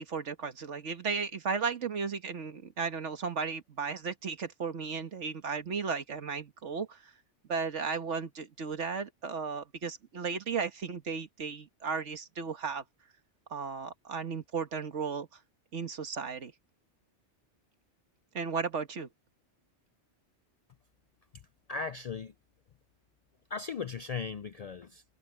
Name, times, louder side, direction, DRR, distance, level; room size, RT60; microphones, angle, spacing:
voice 1, 0.0-7.1 7.5-12.8 13.5-15.3 15.7-16.5 18.3-19.1, right 5 dB, 85° right, 1.8 m, -35 dB
voice 2, 21.7-22.3 23.5-25.0, left 5 dB, 65° left, 0.4 m, -37 dB
omnidirectional pair, 1.2 m